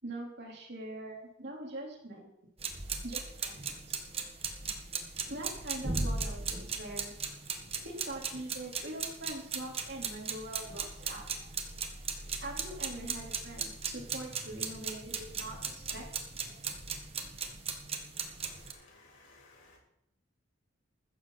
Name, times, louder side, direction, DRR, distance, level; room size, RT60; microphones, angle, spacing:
voice 1, 0.0-2.3 3.0-4.0 5.3-7.1 7.8-11.2 12.4-16.0, right 1 dB, 55° right, -1 dB, 4.1 m, -43 dB
sound 1, 2.6-18.7, right 5 dB, 30° right, 1.4 m, -38 dB
voice 2, 18.4-19.8, left 2 dB, 70° left, -2 dB, 6.0 m, -59 dB
15.0 x 14.0 x 4.3 m, 0.78 s
head